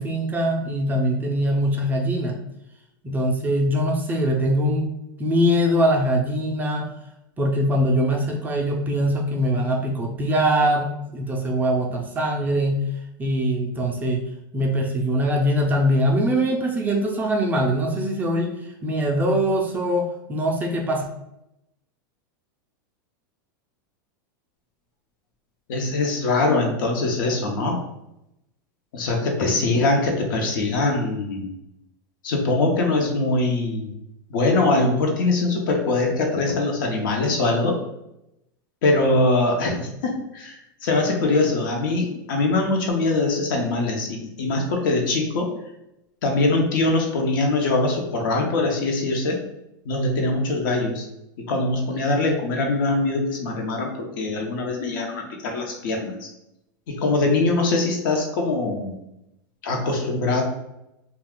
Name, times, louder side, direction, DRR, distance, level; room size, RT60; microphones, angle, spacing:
voice 1, 0.0-2.4 3.0-6.9 7.4-12.8 13.2-14.2 14.5-21.0, equal, 15° right, 0 dB, 0.4 m, -22 dB
voice 2, 25.7-27.8 28.9-31.5 32.2-33.9 34.3-37.7 38.8-45.5 46.2-49.4 49.8-51.1 51.4-56.3 56.9-59.0 59.6-60.4, left 2 dB, 70° left, 2 dB, 0.8 m, -22 dB
2.4 x 2.3 x 3.5 m, 0.84 s
supercardioid pair, 135°, 11 cm